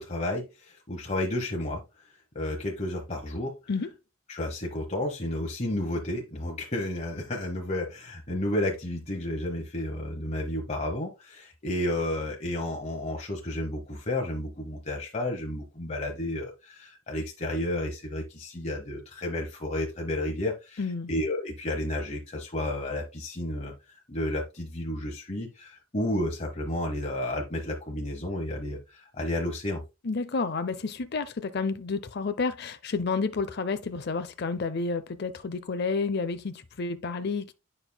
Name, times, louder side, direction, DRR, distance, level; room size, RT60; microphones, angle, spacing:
voice 1, 0.0-1.8 2.3-3.5 4.3-20.8 21.1-23.7 24.1-29.8, left 1 dB, 35° left, 1.0 m, -31 dB
voice 2, 20.8-21.1 30.0-37.5, left 4 dB, 50° left, 0.6 m, -30 dB
9.1 x 5.5 x 2.3 m
head